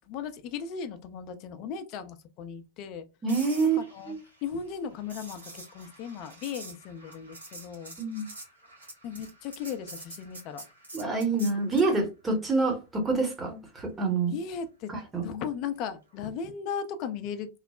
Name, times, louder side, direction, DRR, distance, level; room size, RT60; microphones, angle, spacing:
voice 1, 0.1-3.1 3.6-4.2 4.4-8.0 9.0-10.7 14.3-14.9 15.2-17.5, left 7 dB, 40° left, 0.4 m, -37 dB
voice 2, 3.2-3.8 4.1-4.2 8.0-8.2 10.9-14.4 14.9-15.4, right 3 dB, 15° right, 0.9 m, -27 dB
sound 1, 3.3-11.9 16.1-16.4, right 2 dB, 75° right, 1.1 m, -47 dB
3.0 x 2.0 x 2.3 m
figure-of-eight pair, 90°, 0 cm